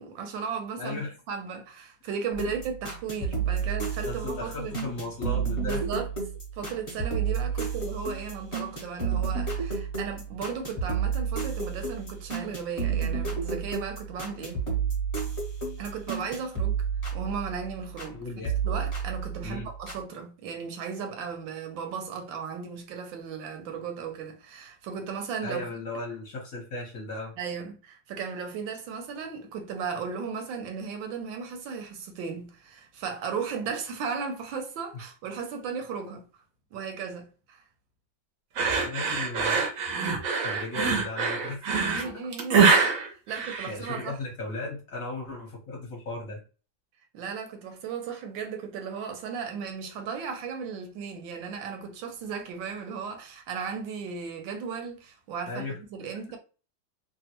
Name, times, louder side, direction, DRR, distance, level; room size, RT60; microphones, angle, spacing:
voice 1, 0.0-1.0 1.3-4.7 5.6-6.1 6.5-14.6 15.8-16.9 17.1-18.2 18.6-25.7 27.4-36.3 36.7-37.6 41.8-42.6 43.3-44.2 47.1-56.4, right 6 dB, 80° right, 1.3 m, -36 dB
voice 2, 0.8-1.1 3.6-3.7 4.1-5.8 7.6-7.7 18.1-18.6 19.4-19.7 25.4-27.4 34.9-35.0 38.8-39.6 40.4-42.0 43.4-46.4 55.5-55.8, left 2 dB, 50° left, 1.2 m, -36 dB
sound 1, 2.3-18.1 18.4-20.0, right 6 dB, 30° left, 0.7 m, -31 dB
sound 2, 38.6-44.1, right 5 dB, 65° right, 0.8 m, -24 dB
3.4 x 2.2 x 2.8 m
omnidirectional pair, 2.1 m